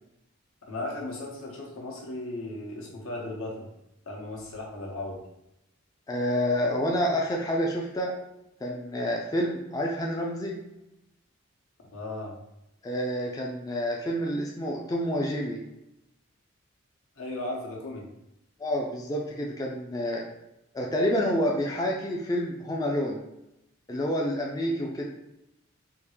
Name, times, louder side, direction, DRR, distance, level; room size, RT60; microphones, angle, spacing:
voice 1, 0.6-3.7 4.1-5.2 11.9-12.4 17.2-18.1, left 2 dB, 80° left, -2 dB, 0.9 m, -36 dB
voice 2, 6.1-8.1 8.6-10.5 12.8-15.6 18.6-20.3 20.7-23.2 23.9-25.1, equal, 15° left, -1 dB, 0.3 m, -28 dB
3.5 x 2.4 x 3.1 m, 0.86 s
head